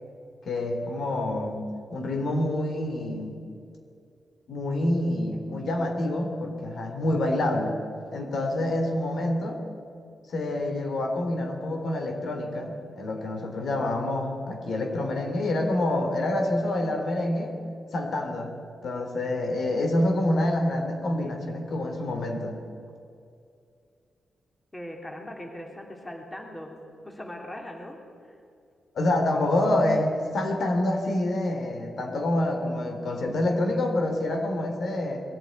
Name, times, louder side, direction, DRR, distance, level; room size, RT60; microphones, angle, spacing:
voice 1, 0.4-1.6 1.9-3.4 4.5-7.8 8.1-9.6 10.3-17.5 17.9-18.5 18.8-22.6 28.9-35.2, left 1 dB, 65° left, 3 dB, 3.4 m, -27 dB
voice 2, 24.7-26.7 27.0-28.0 28.2-28.4, left 1 dB, 15° left, 1 dB, 3.2 m, -40 dB
22.0 x 13.5 x 9.6 m, 2.4 s
wide cardioid pair, 125°, 0 cm